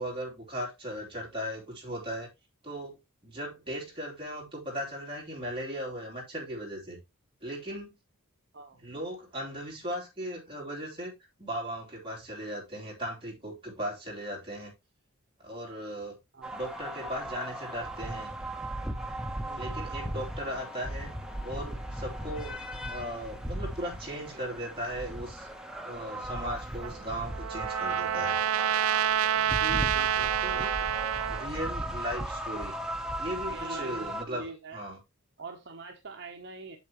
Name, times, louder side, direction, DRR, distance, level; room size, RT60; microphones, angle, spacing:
voice 1, 0.0-2.3 2.6-7.0 7.4-7.9 8.8-14.7 15.4-16.2 16.5-18.3 19.6-21.1 21.4-22.6 22.9-25.5 25.8-28.4 30.4-30.9 31.3-32.8 33.2-35.0, equal, 25° right, 3.1 m, -37 dB
sound 1, 16.4-34.2, right 1 dB, 5° right, 0.7 m, -37 dB
voice 2, 19.4-19.8 24.3-24.4 29.4-30.3 33.5-34.8 35.4-36.8, right 2 dB, 50° right, 0.9 m, -43 dB
Trumpet, 26.8-31.5, right 10 dB, 80° right, 0.4 m, -28 dB
8.4 x 6.7 x 3.0 m
head